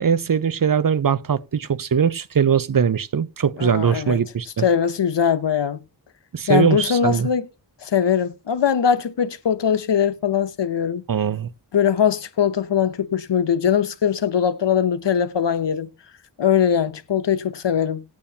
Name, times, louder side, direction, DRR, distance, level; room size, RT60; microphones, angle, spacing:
voice 1, 0.0-4.6 6.3-7.3 11.1-11.5, right 7 dB, 55° right, 0.6 m, -21 dB
voice 2, 3.6-4.2 4.6-5.8 6.5-7.5 7.8-11.0 11.7-15.9 16.4-18.0, left 8 dB, 90° left, 0.8 m, -21 dB
18.5 x 8.7 x 2.8 m
wide cardioid pair, 60°, 41 cm